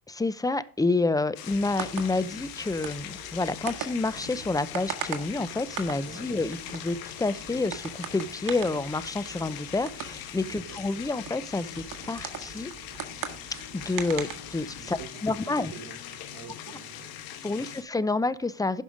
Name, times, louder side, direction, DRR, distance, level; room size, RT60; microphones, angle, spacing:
voice 1, 0.1-12.7 13.7-15.7 17.4-18.8, left 3 dB, 10° left, 16 dB, 0.6 m, -29 dB
sound 1, 1.4-17.8, left 10 dB, 90° left, 1.2 m, -41 dB
sound 2, 1.5-15.1, right 8 dB, 60° right, 1.7 m, -41 dB
voice 2, 10.4-10.8 14.8-17.8, right 7 dB, 80° right, 4 dB, 1.5 m, -48 dB
11.5 x 5.5 x 5.0 m, 0.42 s
cardioid pair, 90°, 35 cm